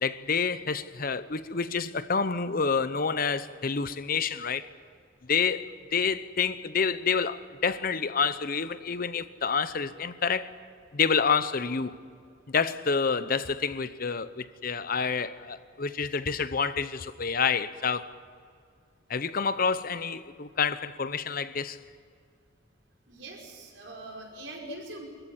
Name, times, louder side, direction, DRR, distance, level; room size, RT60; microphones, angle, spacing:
voice 1, 0.0-4.7 5.3-10.5 10.9-12.0 12.5-18.1 19.1-21.8, left 5 dB, 50° left, 0.8 m, -28 dB
voice 2, 23.1-25.1, right 2 dB, 75° right, 5.2 m, -43 dB
24.5 x 15.0 x 9.9 m
head